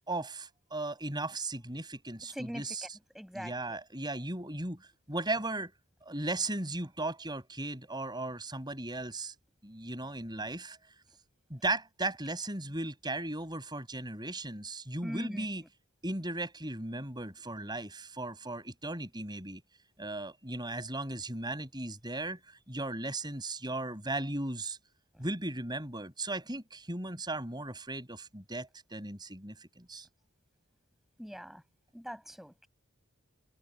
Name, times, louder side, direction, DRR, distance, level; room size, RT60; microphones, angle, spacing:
voice 1, 0.1-3.0 3.3-5.7 6.0-9.3 9.6-10.8 11.5-15.6 16.0-19.6 20.0-22.4 22.7-24.8 25.2-30.1, right 2 dB, 20° right, 6.8 m, -37 dB
voice 2, 2.3-2.6 3.1-3.8 15.0-15.5 31.2-31.6 31.9-32.7, equal, ahead, 6.7 m, -41 dB
head